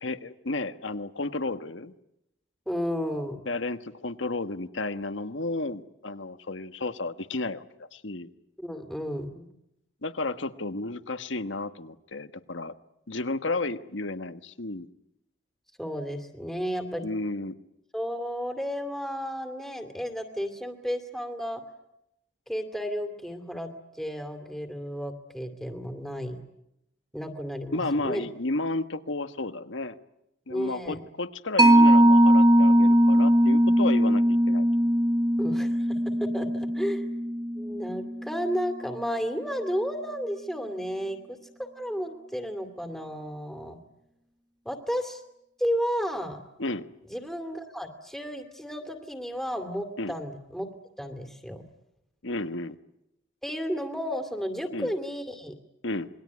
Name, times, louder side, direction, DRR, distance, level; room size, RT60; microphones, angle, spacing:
voice 1, 0.0-1.9 3.4-8.3 10.0-12.7 13.1-14.9 17.0-17.6 27.7-30.0 30.5-34.9 46.6-46.9 50.0-50.1 52.2-52.8 54.7-54.9 55.8-56.1, left 2 dB, 80° left, 10 dB, 1.4 m, -32 dB
voice 2, 2.7-3.4 8.6-9.5 15.8-17.1 17.9-21.6 22.5-26.4 27.1-28.3 30.5-31.0 35.4-37.0 37.5-41.4 41.8-43.8 44.6-45.2 45.6-46.4 47.0-50.7 51.0-51.6 53.4-55.5, equal, ahead, 7 dB, 2.4 m, -33 dB
Mallet percussion, 31.6-38.6, equal, 20° right, 1.3 m, -20 dB
27.5 x 22.0 x 9.6 m, 0.84 s
head